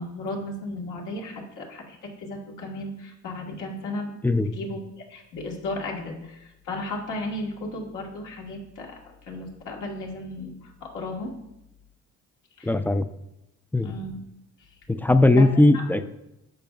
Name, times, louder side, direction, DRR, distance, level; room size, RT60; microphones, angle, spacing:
voice 1, 0.0-4.1 4.5-9.0 9.3-11.3 12.6-12.8 13.8-14.2 15.3-15.5 15.7-15.8, left 2 dB, 85° left, -1 dB, 1.5 m, -34 dB
voice 2, 12.6-13.0 13.7-13.9 14.9-16.1, left 2 dB, 5° left, 11 dB, 0.3 m, -19 dB
10.5 x 6.7 x 2.4 m, 0.87 s
cardioid pair, 90°, 30 cm